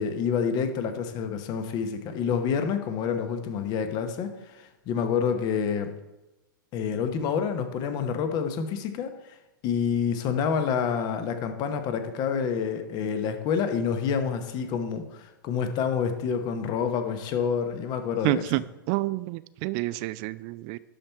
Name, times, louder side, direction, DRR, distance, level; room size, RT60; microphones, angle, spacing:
voice 1, 0.0-5.9 6.7-9.1 9.6-18.4, left 6 dB, 35° left, 8 dB, 1.0 m, -28 dB
voice 2, 18.2-20.8, right 20 dB, 40° right, 18 dB, 0.4 m, -29 dB
12.0 x 4.4 x 4.5 m, 1.0 s
figure-of-eight pair, 105°, 12 cm